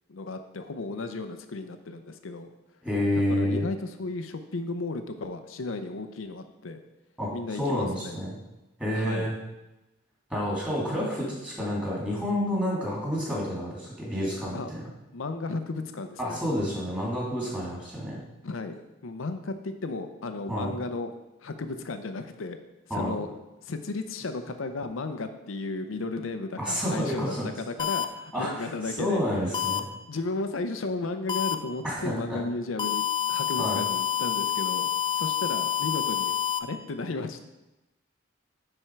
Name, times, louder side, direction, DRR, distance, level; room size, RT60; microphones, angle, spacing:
voice 1, 0.1-2.5 3.1-6.8 7.3-8.2 8.9-9.3 14.5-14.7 15.1-16.4 18.4-21.1 21.4-22.6 22.9-29.2 30.1-33.0 33.3-34.9 35.2-36.3 36.6-37.5, left 3 dB, 90° left, 8 dB, 0.6 m, -34 dB
voice 2, 2.8-3.7 7.2-7.3 7.6-8.3 8.8-9.3 10.3-14.8 16.2-18.2 20.5-20.7 22.9-23.1 26.6-27.5 28.3-28.7 29.0-29.9 31.8-32.4 33.6-33.8, equal, 5° right, -6 dB, 2.5 m, -29 dB
sound 1, 27.8-28.0 29.5-29.8 31.3-31.5 32.8-36.6, left 8 dB, 25° left, 0.4 m, -27 dB
9.7 x 4.4 x 4.5 m, 0.99 s
head